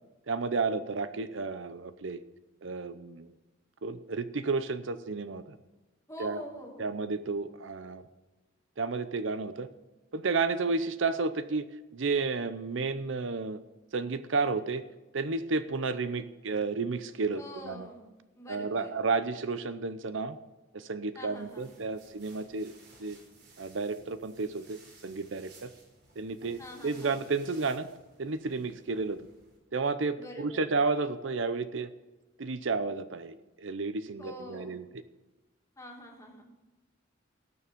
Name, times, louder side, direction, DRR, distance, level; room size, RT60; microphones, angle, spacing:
voice 1, 0.3-2.2 2.6-3.3 3.8-5.4 6.2-6.4 6.8-8.0 8.8-9.7 10.1-11.7 11.9-13.6 13.9-14.8 15.1-17.9 18.5-20.4 20.7-22.7 23.0-23.2 23.6-25.7 26.2-27.9 28.2-29.3 29.7-31.9 32.4-34.8, right 4 dB, 75° right, 12 dB, 0.7 m, -32 dB
voice 2, 6.1-6.9 17.3-18.1 18.4-18.9 21.1-21.7 26.6-27.1 30.1-30.7 34.2-34.8 35.8-36.5, equal, 15° left, 0 dB, 2.2 m, -45 dB
sound 1, 21.3-29.6, right 3 dB, 55° right, 3.9 m, -58 dB
19.0 x 7.1 x 5.2 m, 1.1 s
head